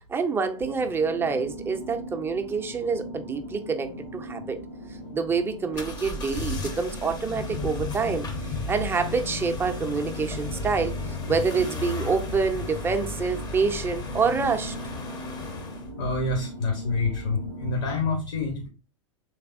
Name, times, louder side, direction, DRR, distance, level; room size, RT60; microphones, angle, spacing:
voice 1, 0.1-4.6 5.1-8.3 8.7-10.9 11.3-14.8, right 5 dB, 15° right, 0.4 m, -27 dB
sound 1, 0.6-18.0, right 1 dB, 70° left, 1.5 m, -40 dB
sound 2, 5.7-15.9, left 3 dB, 25° left, 0.6 m, -34 dB
voice 2, 16.0-18.7, left 3 dB, 55° left, 0.9 m, -27 dB
3.3 x 3.3 x 2.5 m
hypercardioid pair, 100°, 17 cm